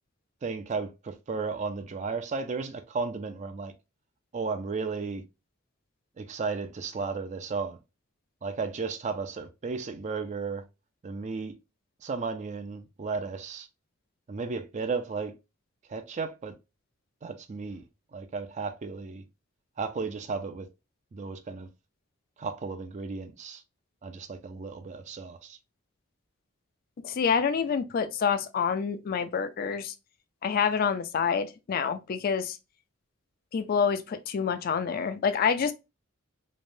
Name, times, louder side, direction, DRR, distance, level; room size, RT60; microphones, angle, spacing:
voice 1, 0.4-3.7 4.3-5.2 6.2-7.8 8.4-10.6 11.0-11.5 12.0-13.7 14.3-15.3 15.9-16.5 17.2-17.8 18.1-19.2 19.8-20.7 21.1-21.7 22.4-23.6 24.0-25.6, right 4 dB, 35° right, 0.4 m, -34 dB
voice 2, 27.0-29.9 30.4-32.6 33.5-35.7, left 6 dB, 45° left, 0.3 m, -27 dB
3.2 x 2.1 x 2.5 m
head